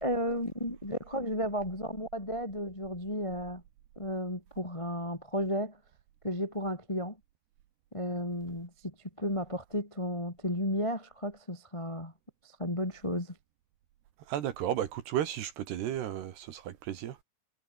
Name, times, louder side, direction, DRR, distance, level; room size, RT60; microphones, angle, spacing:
voice 1, 0.0-3.6 3.9-5.8 6.2-7.2 7.9-12.1 12.4-13.4, equal, 15° left, 1.0 m, -33 dB
voice 2, 14.3-17.2, right 11 dB, 65° right, 3.2 m, -33 dB
omnidirectional pair, 5.8 m